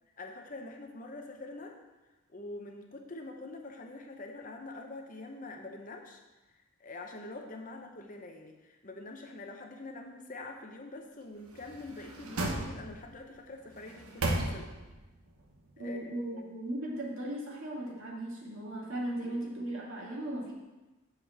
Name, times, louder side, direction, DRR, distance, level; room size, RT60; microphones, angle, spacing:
voice 1, 0.2-1.8 2.3-6.2 6.5-14.8 15.8-16.5 19.2-19.4, left 2 dB, 35° left, 3 dB, 0.8 m, -45 dB
sound 1, 11.5-13.2 13.7-15.0 15.4-15.5, right 1 dB, 85° right, 1.1 m, -35 dB
voice 2, 15.8-20.5, right 1 dB, 65° right, -4 dB, 2.4 m, -37 dB
7.4 x 5.1 x 7.1 m, 1.1 s
head